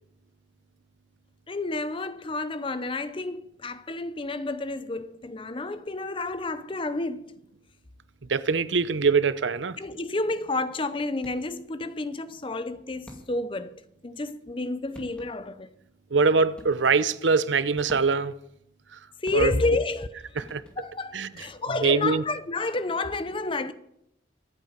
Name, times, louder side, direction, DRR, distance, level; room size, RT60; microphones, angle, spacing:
voice 1, 1.5-7.4 9.8-15.7 19.2-20.4 20.8-23.7, left 2 dB, 30° left, 0.7 m, -30 dB
voice 2, 8.3-9.8 16.1-18.3 19.3-19.5 20.4-20.6 21.1-21.3 21.8-22.2, right 4 dB, 80° right, 0.7 m, -23 dB
sound 1, 11.1-11.6 13.0-13.6 14.6-14.7 14.9-15.6 16.6-17.0 17.9-18.4 19.2-19.9 20.4-21.0, equal, 5° left, 2.4 m, -48 dB
23.0 x 8.2 x 5.2 m
head